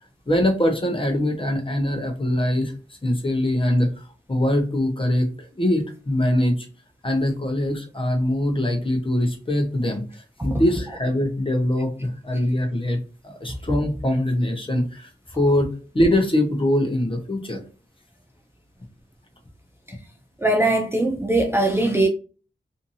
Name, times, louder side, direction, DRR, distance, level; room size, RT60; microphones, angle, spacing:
voice 1, 0.3-2.7 3.0-6.7 7.0-15.1 15.4-17.6, left 1 dB, 25° left, 0.8 m, -23 dB
voice 2, 20.4-22.1, right 2 dB, 15° right, 0.4 m, -20 dB
2.7 x 2.6 x 2.6 m
wide cardioid pair, 85°, 19 cm